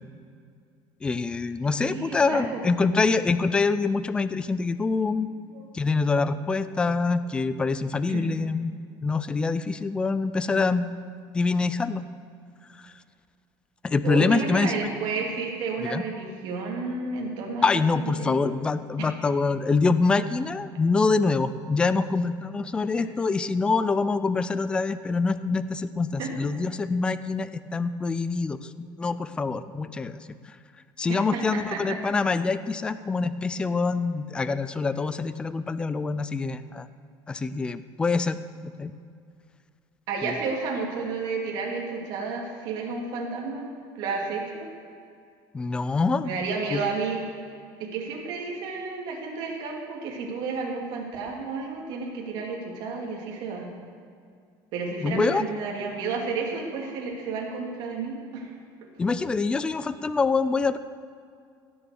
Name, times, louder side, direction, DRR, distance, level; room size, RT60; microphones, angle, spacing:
voice 1, 1.0-5.3 5.7-8.7 9.0-10.9 11.3-12.0 13.8-14.7 15.8-16.0 17.6-28.6 29.0-30.2 31.0-36.9 37.3-38.4 38.6-38.9 40.2-40.3 45.5-46.3 46.7-46.8 55.0-55.5 59.0-60.8, left 4 dB, 10° left, 14 dB, 0.3 m, -25 dB
voice 2, 1.8-3.0 5.5-5.6 8.1-8.4 10.4-10.7 14.0-17.6 18.0-18.4 19.0-19.1 26.2-26.3 31.3-32.0 40.1-43.7 44.0-44.7 46.2-47.2 47.8-53.7 54.7-58.5, right 4 dB, 55° right, -1 dB, 2.6 m, -31 dB
16.5 x 7.0 x 7.0 m, 2.3 s
cardioid pair, 180°, 9 cm